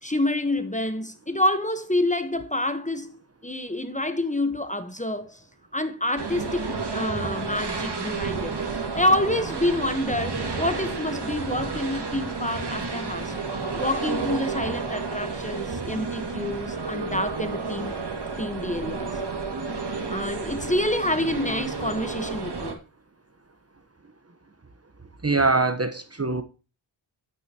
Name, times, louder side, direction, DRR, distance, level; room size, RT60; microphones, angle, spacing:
voice 1, 0.0-5.4 5.7-8.6 8.9-13.3 13.8-17.9 18.4-19.2 20.1-22.8, left 1 dB, 15° left, 1.1 m, -27 dB
sound 1, 6.2-22.7, right 4 dB, 50° right, 2.2 m, -31 dB
voice 2, 25.2-26.4, right 3 dB, 30° right, 1.0 m, -23 dB
9.5 x 9.4 x 2.9 m
wide cardioid pair, 70°, 49 cm